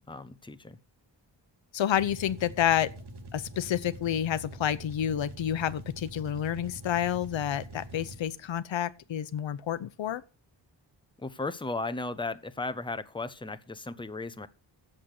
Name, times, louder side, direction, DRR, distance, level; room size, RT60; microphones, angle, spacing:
voice 1, 0.1-0.8 11.2-14.5, left 3 dB, 10° left, 0.8 m, -35 dB
voice 2, 1.7-2.9 3.3-10.2, left 10 dB, 90° left, 0.9 m, -29 dB
sound 1, 1.9-8.4, right 1 dB, 65° right, 1.9 m, -45 dB
8.6 x 7.6 x 6.6 m
wide cardioid pair, 95°, 44 cm